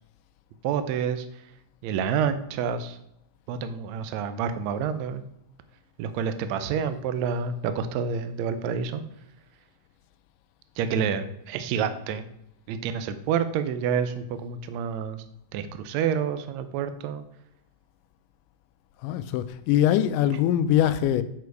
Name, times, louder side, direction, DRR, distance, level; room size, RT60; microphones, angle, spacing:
voice 1, 0.6-1.3 1.8-3.0 3.5-5.2 6.0-9.0 10.8-12.3 12.7-15.2 15.5-17.2, right 7 dB, 75° right, 1.7 m, -28 dB
voice 2, 19.0-21.2, left 11 dB, 90° left, 2.1 m, -23 dB
8.2 x 4.9 x 4.6 m
omnidirectional pair, 3.6 m